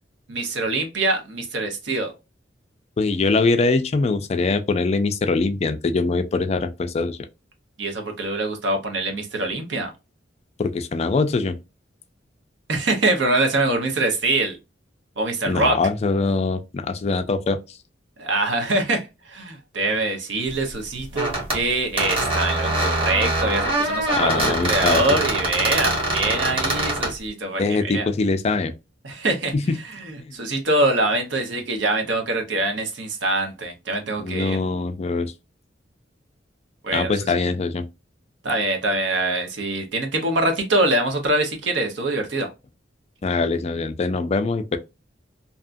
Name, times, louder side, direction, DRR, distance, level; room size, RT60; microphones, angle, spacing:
voice 1, 0.3-2.1 7.8-9.9 12.7-14.6 15.2-15.8 18.2-28.1 29.0-29.5 29.9-34.6 36.8-37.2 38.4-42.5, right 2 dB, 80° right, 0.9 m, -24 dB
voice 2, 3.0-7.2 10.6-11.6 15.4-17.6 24.2-25.0 27.6-28.7 29.5-29.8 30.2-30.3 34.2-35.3 36.9-37.8 43.2-44.8, left 3 dB, 35° left, 0.4 m, -22 dB
sound 1, 21.1-21.6 22.0-27.1, right 1 dB, 30° right, 1.2 m, -23 dB
2.8 x 2.4 x 2.5 m
head